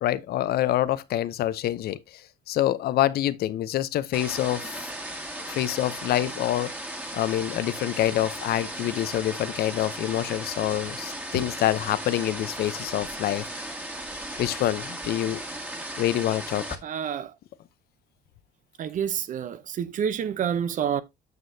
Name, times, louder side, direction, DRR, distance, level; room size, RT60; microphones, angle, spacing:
voice 1, 0.0-2.0 2.5-4.9 5.5-6.7 7.1-13.4 14.4-15.4 16.0-16.8, left 13 dB, 65° left, 0.7 m, -26 dB
sound 1, 4.1-16.8, right 1 dB, 10° right, 1.7 m, -36 dB
voice 2, 16.8-17.3 18.8-21.0, right 8 dB, 50° right, 0.7 m, -28 dB
9.5 x 6.2 x 2.7 m
cardioid pair, 110°, 17 cm